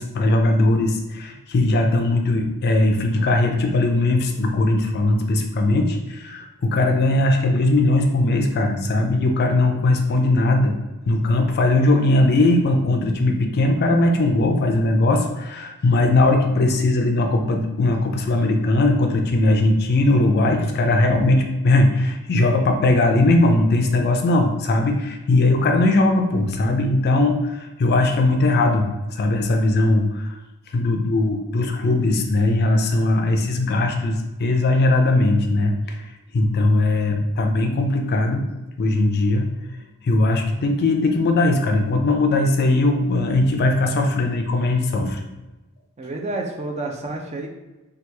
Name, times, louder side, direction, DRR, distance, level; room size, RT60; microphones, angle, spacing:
voice 1, 0.0-10.7 11.1-30.4 30.7-36.0 36.3-38.4 38.8-39.5 40.0-45.2, left 2 dB, 45° left, 4 dB, 0.4 m, -19 dB
voice 2, 46.0-47.5, right 2 dB, 30° right, 2 dB, 0.4 m, -29 dB
2.9 x 2.3 x 3.3 m, 1.1 s
head